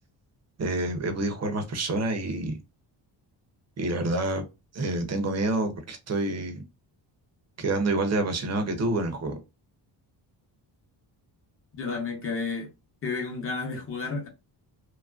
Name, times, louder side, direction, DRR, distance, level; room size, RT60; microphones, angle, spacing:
voice 1, 0.6-2.6 3.8-4.4 4.7-6.6 7.6-9.4, right 2 dB, 35° right, 0.5 m, -28 dB
voice 2, 11.8-12.7 13.0-14.3, left 4 dB, 30° left, 0.8 m, -31 dB
3.1 x 2.4 x 2.3 m
wide cardioid pair, 175°, 44 cm